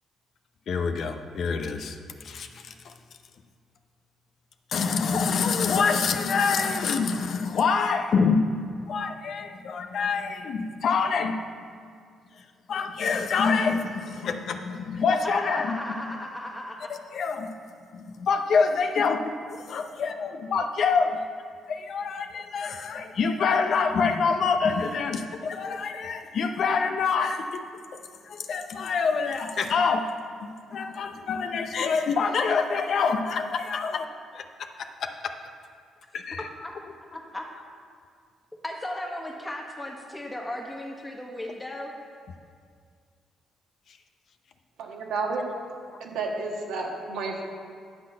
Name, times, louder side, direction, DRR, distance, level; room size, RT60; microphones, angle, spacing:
voice 1, 0.7-2.0 2.2-2.9 4.7-8.5 8.9-11.4 12.7-15.8 16.9-17.5 17.9-19.3 19.6-21.2 21.7-27.6 28.3-30.1 30.7-34.1 34.3-34.4 35.0-35.1 36.1-36.4, left 5 dB, 60° left, 6 dB, 0.7 m, -26 dB
voice 2, 15.1-16.9 36.3-36.7 37.1-37.5 38.6-41.9, left 1 dB, 15° left, 0 dB, 1.5 m, -36 dB
voice 3, 44.8-45.4 46.0-47.4, right 3 dB, 85° right, 0 dB, 1.5 m, -31 dB
10.5 x 4.0 x 7.5 m, 2.1 s
cardioid pair, 90°, 0 cm